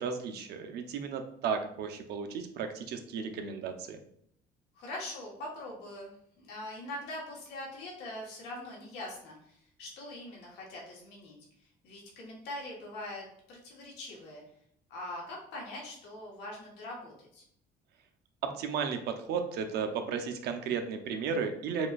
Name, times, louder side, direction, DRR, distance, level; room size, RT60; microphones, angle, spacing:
voice 1, 0.0-4.0 18.4-21.9, right 6 dB, 75° right, 6 dB, 0.6 m, -34 dB
voice 2, 4.7-11.4 11.8-14.4 14.9-17.4, left 1 dB, 90° left, -3 dB, 1.5 m, -42 dB
7.0 x 2.4 x 2.5 m, 0.69 s
cardioid pair, 110°, 17 cm